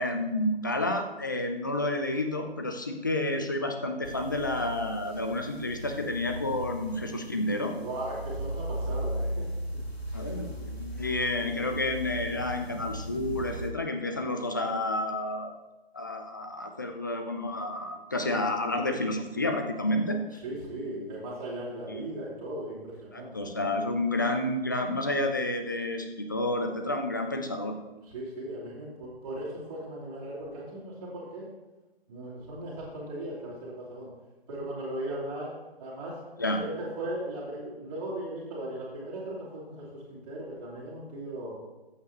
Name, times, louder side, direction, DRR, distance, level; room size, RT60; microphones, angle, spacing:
voice 1, 0.0-7.7 10.1-15.5 15.9-20.4 21.9-22.1 23.1-27.7 36.4-36.6, left 1 dB, 20° left, 5 dB, 0.5 m, -30 dB
sound 1, 4.0-13.7, equal, 85° left, 2.2 m, -37 dB
voice 2, 7.7-9.5 10.1-10.2 11.0-11.1 14.1-14.2 20.4-23.5 28.0-31.5 32.1-34.1 34.5-35.5 35.8-36.2 36.6-41.5, right 1 dB, 20° right, -8 dB, 3.4 m, -37 dB
14.0 x 8.6 x 3.0 m, 1.1 s
figure-of-eight pair, 150°, 31 cm